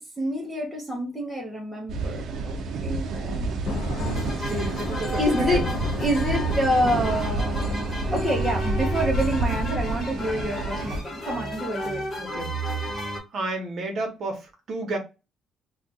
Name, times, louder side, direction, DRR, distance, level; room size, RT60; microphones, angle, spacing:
voice 1, 0.0-3.5 5.2-5.7 6.0-12.0, equal, 5° right, 0.6 m, -27 dB
sound 1, 1.9-11.0, right 3 dB, 60° right, 0.5 m, -29 dB
Thunder / Rain, 3.6-9.6, left 5 dB, 60° left, 0.4 m, -35 dB
sound 2, 4.0-13.2, right 1 dB, 35° left, 1.1 m, -32 dB
voice 2, 4.4-5.6 12.2-12.6 13.3-15.0, right 2 dB, 40° right, 1.0 m, -31 dB
2.4 x 2.2 x 3.9 m
cardioid pair, 160°, 0 cm